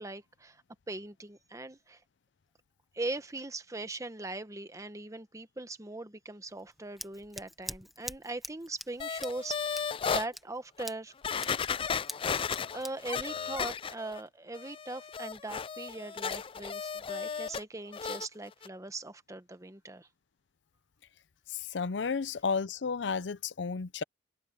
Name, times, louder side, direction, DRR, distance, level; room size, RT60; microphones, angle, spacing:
voice 1, 0.0-2.0 2.9-11.1 12.3-20.1, right 2 dB, 20° right, 1.0 m, -40 dB
Scissors, 6.5-14.2, equal, ahead, 1.3 m, -46 dB
sound 1, 9.0-10.3 10.8-10.9 11.2-14.2 14.5-17.6 17.9-18.3 18.6-18.7, left 6 dB, 30° left, 0.4 m, -34 dB
voice 2, 21.5-24.0, left 5 dB, 80° left, 0.6 m, -32 dB
head